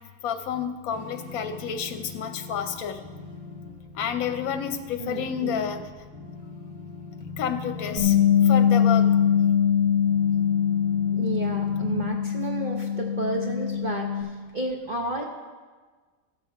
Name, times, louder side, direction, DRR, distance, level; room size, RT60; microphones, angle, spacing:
voice 1, 0.2-3.0 4.0-5.8 7.4-8.1 8.5-9.0, left 8 dB, 75° left, 7 dB, 1.1 m, -29 dB
sound 1, 0.9-12.1, left 4 dB, 5° left, 1.6 m, -41 dB
voice 2, 5.0-5.6 11.1-15.2, right 3 dB, 40° right, -1 dB, 0.8 m, -32 dB
Bass guitar, 8.0-14.2, left 8 dB, 70° right, 2.4 m, -22 dB
14.0 x 7.2 x 4.5 m, 1.4 s
omnidirectional pair, 1.5 m